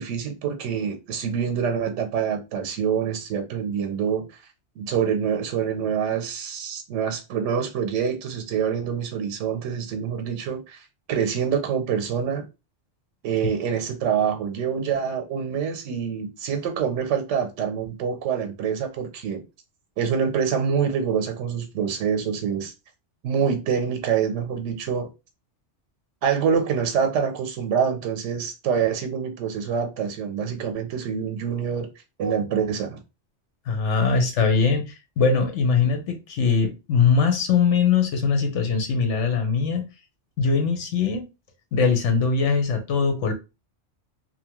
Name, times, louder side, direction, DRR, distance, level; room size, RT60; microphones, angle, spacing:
voice 1, 0.0-4.3 4.8-12.5 13.2-19.4 20.0-22.7 23.2-25.1 26.2-31.9 32.2-33.0, right 7 dB, 90° right, 0.9 m, -26 dB
voice 2, 33.7-39.8 40.4-41.2 41.7-43.3, left 5 dB, 80° left, 1.1 m, -21 dB
2.8 x 2.1 x 2.8 m
omnidirectional pair, 1.2 m